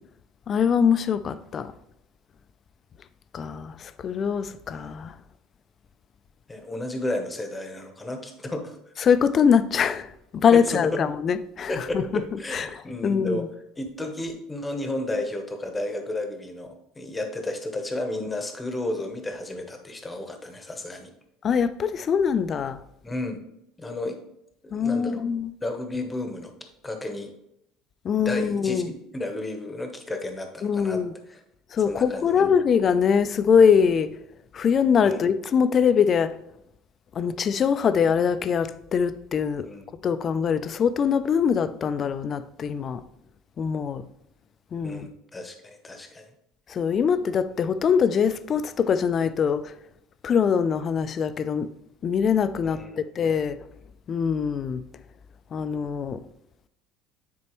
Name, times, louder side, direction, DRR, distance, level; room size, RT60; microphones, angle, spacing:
voice 1, 0.5-1.7 3.3-5.1 9.0-10.1 10.3-12.2 12.5-13.5 21.4-22.8 24.7-25.5 28.0-28.9 30.6-31.1 31.7-34.1 34.5-36.3 37.2-39.7 40.0-43.0 43.6-44.1 44.7-45.1 46.7-49.7 50.2-51.7 52.0-53.6 54.1-54.8 55.5-56.2, left 7 dB, 30° left, 0.3 m, -23 dB
voice 2, 6.5-8.8 10.5-11.0 11.7-13.4 13.8-16.7 17.0-21.1 23.0-23.4 23.8-24.2 24.6-25.3 25.6-26.5 26.8-27.3 28.2-31.0 31.3-31.4 31.9-32.4 35.0-35.3 39.6-39.9 44.8-46.3 52.6-53.1, left 1 dB, 10° left, 0.8 m, -32 dB
9.4 x 4.3 x 3.0 m
cardioid pair, 155°, 0 cm